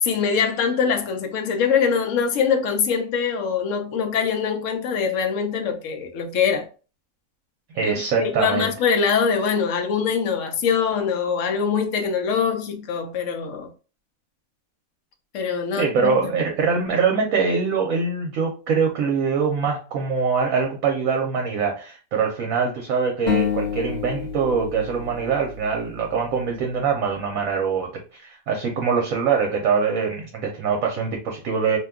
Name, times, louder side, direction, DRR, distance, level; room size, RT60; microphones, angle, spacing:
voice 1, 0.0-6.6 7.8-13.7 15.3-16.3, left 6 dB, 65° left, 0.9 m, -23 dB
voice 2, 7.7-8.7 15.8-31.8, right 5 dB, 70° right, 1.0 m, -23 dB
sound 1, 23.3-26.5, left 7 dB, 45° left, 1.1 m, -28 dB
2.8 x 2.2 x 3.5 m
omnidirectional pair, 1.6 m